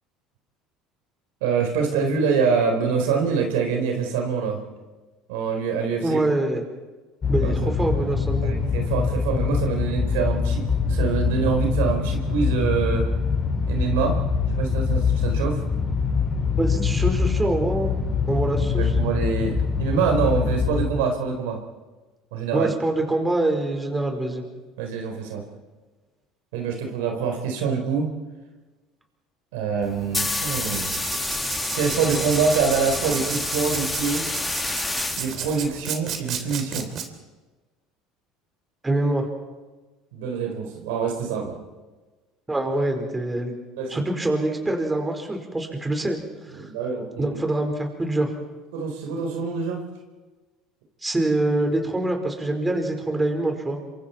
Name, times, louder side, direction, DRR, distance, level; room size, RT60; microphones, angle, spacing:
voice 1, 1.4-4.6 5.3-6.2 7.4-7.5 8.4-13.0 13.7-14.2 14.6-15.6 18.7-21.6 22.3-22.7 24.8-25.4 26.5-28.1 29.5-30.9 31.7-34.3 35.2-36.9 40.1-41.6 43.8-44.0 46.6-47.4 48.7-49.9, right 5 dB, 80° right, 2 dB, 4.3 m, -25 dB
voice 2, 6.0-6.6 7.3-8.5 16.6-17.9 18.3-18.8 22.5-24.4 38.8-39.3 42.5-43.5 43.9-46.2 46.4-46.6 47.2-48.3 51.0-53.8, right 2 dB, 15° right, 3 dB, 4.8 m, -25 dB
sound 1, 7.2-20.9, left 5 dB, 35° left, 5.7 m, -24 dB
sound 2, 29.8-35.8, left 3 dB, 15° left, 2.3 m, -29 dB
Writing, 30.2-37.1, right 8 dB, 50° right, 3.0 m, -33 dB
27.0 x 24.5 x 4.6 m, 1.2 s
supercardioid pair, 90°, 0 cm